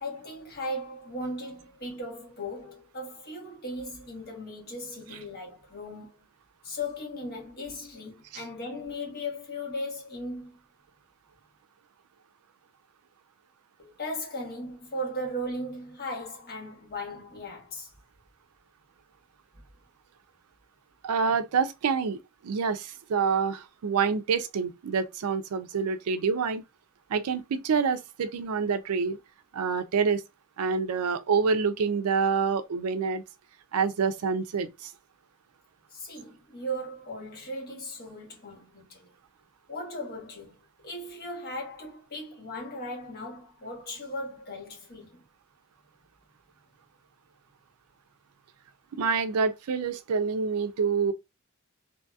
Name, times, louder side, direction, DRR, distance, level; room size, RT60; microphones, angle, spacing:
voice 1, 0.0-6.3 6.6-10.6 13.8-17.9 35.9-39.1 39.7-40.5 40.8-45.2, left 1 dB, 45° left, 1.1 m, -37 dB
voice 2, 21.0-26.6 27.1-29.2 29.5-30.2 30.6-33.2 33.7-34.9 49.0-51.1, right 5 dB, 80° right, 0.4 m, -27 dB
2.7 x 2.7 x 2.2 m
head